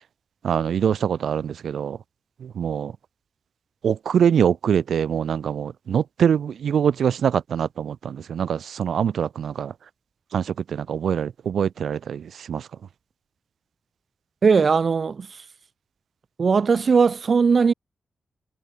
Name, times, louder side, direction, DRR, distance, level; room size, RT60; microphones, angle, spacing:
voice 1, 0.4-2.0 2.4-2.9 3.8-9.7 10.3-12.7, right 8 dB, 85° right, 1.5 m, -24 dB
voice 2, 14.4-15.4 16.4-17.7, right 5 dB, 45° right, 1.2 m, -19 dB
wide cardioid pair, 175°, 0 cm